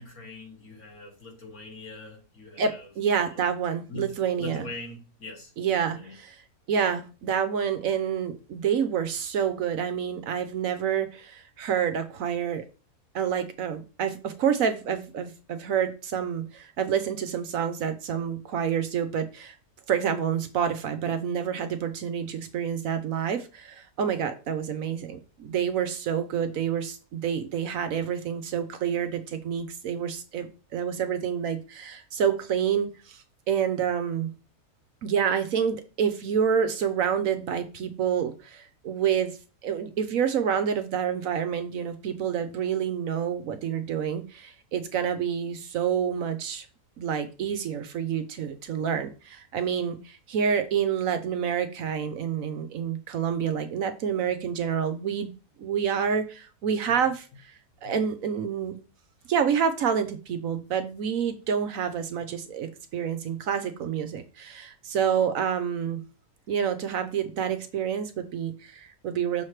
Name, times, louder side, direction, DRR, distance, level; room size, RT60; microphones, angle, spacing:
voice 1, 0.0-2.9 3.2-3.5 3.9-6.2 57.8-58.0 62.2-62.3, left 2 dB, 65° left, 2.6 m, -42 dB
voice 2, 2.6-4.7 5.6-6.4 6.7-12.7 13.1-19.5 19.9-34.3 35.0-39.4 39.6-46.6 47.0-55.3 55.6-57.3 57.8-58.8 59.3-66.0 66.5-69.4, right 8 dB, 65° right, 1.1 m, -28 dB
6.4 x 5.9 x 3.2 m
omnidirectional pair, 1.6 m